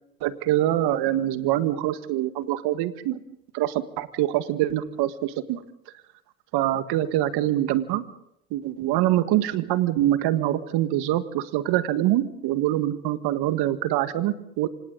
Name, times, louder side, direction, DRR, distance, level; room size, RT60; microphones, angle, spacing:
voice 1, 0.2-3.2 3.5-5.6 6.5-8.0 8.5-14.7, right 13 dB, 60° right, 11 dB, 1.9 m, -24 dB
28.5 x 26.0 x 4.0 m, 0.76 s
hypercardioid pair, 80°, 44 cm